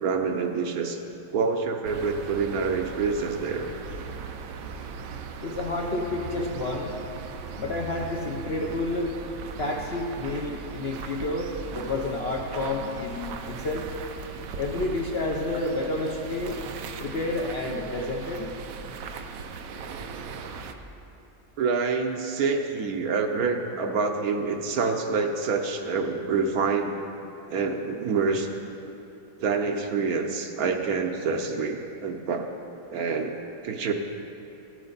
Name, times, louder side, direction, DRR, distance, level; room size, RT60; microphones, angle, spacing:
voice 1, 0.0-1.0 1.3-3.7 21.6-27.0 27.5-28.5 29.4-32.5 32.9-33.4 33.6-33.9, right 4 dB, 65° right, 4 dB, 1.1 m, -27 dB
sound 1, 1.8-20.7, right 5 dB, 90° right, 1.3 m, -38 dB
voice 2, 5.4-7.0 7.6-9.1 9.6-13.9 14.6-16.6 17.0-18.5, left 2 dB, 50° left, 0 dB, 0.8 m, -30 dB
15.0 x 9.6 x 4.0 m, 2.9 s
omnidirectional pair, 1.8 m